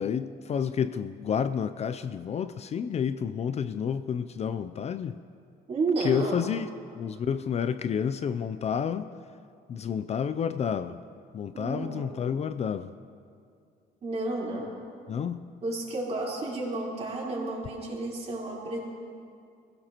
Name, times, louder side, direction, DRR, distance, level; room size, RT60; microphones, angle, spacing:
voice 1, 0.0-5.2 6.0-6.7 6.9-9.1 9.7-11.0 11.3-12.9 15.1-15.5, left 7 dB, 40° left, 12 dB, 0.5 m, -30 dB
voice 2, 5.7-6.4 11.5-12.1 14.0-14.7 15.6-18.8, right 2 dB, 40° right, -4 dB, 4.3 m, -31 dB
21.5 x 16.0 x 3.0 m, 2.4 s
cardioid pair, 110°, 17 cm